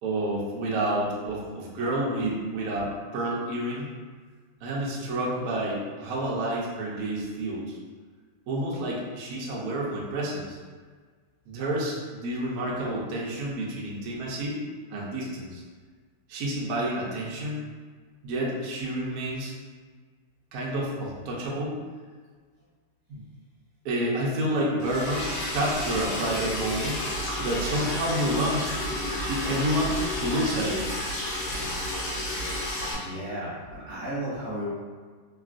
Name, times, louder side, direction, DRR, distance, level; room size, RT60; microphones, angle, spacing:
voice 1, 0.0-3.9 4.6-7.8 8.5-10.6 11.5-14.6 14.9-15.6 16.3-17.6 18.2-19.5 20.5-21.7 23.1-23.2 23.8-27.0 27.4-28.7 29.2-30.8, right 1 dB, 75° right, -4 dB, 0.8 m, -29 dB
Liquid, 24.8-32.9, left 1 dB, 70° left, 1.3 m, -31 dB
voice 2, 32.9-34.7, right 1 dB, 40° right, -9 dB, 1.3 m, -34 dB
3.5 x 2.3 x 2.4 m, 1.5 s
omnidirectional pair, 2.4 m